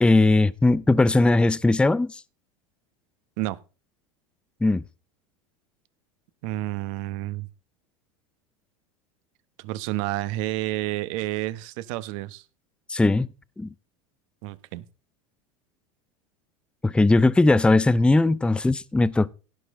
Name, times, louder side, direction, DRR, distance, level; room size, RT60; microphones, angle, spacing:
voice 1, 0.0-2.2 4.6-4.8 12.9-13.3 13.6-13.7 16.8-19.3, left 2 dB, 5° left, 0.5 m, -19 dB
voice 2, 6.4-7.5 9.6-12.4 14.4-14.8, right 16 dB, 65° right, 1.2 m, -30 dB
17.0 x 6.5 x 3.8 m
hypercardioid pair, 100°, 18 cm